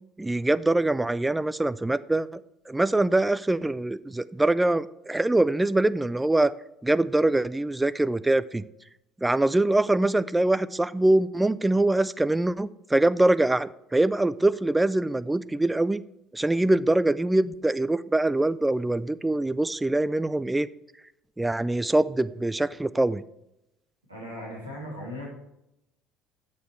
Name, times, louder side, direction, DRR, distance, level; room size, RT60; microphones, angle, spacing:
voice 1, 0.2-2.3 2.7-6.5 6.8-8.7 9.2-16.0 16.3-20.7 21.4-23.2, right 2 dB, 10° right, 16 dB, 0.4 m, -23 dB
voice 2, 24.1-25.3, left 1 dB, 85° right, -4 dB, 2.8 m, -37 dB
8.4 x 6.9 x 4.5 m, 0.84 s
figure-of-eight pair, 60°, 0 cm